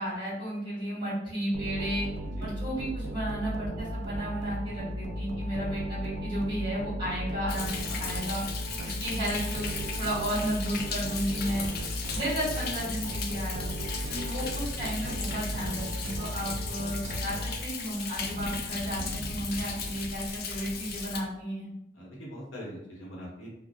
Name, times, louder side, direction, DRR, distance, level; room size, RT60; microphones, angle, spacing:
voice 1, 0.0-2.1 2.4-8.4 8.8-9.7 10.0-11.6 12.1-13.6 14.1-21.7, equal, 25° right, -8 dB, 1.1 m, -33 dB
sound 1, 1.5-18.0, right 1 dB, 65° right, 0.4 m, -36 dB
Thunder, 7.5-21.2, left 5 dB, 50° left, 0.3 m, -37 dB
voice 2, 11.4-11.7 21.9-23.5, equal, 80° left, -4 dB, 0.9 m, -42 dB
2.3 x 2.0 x 2.6 m, 0.85 s
head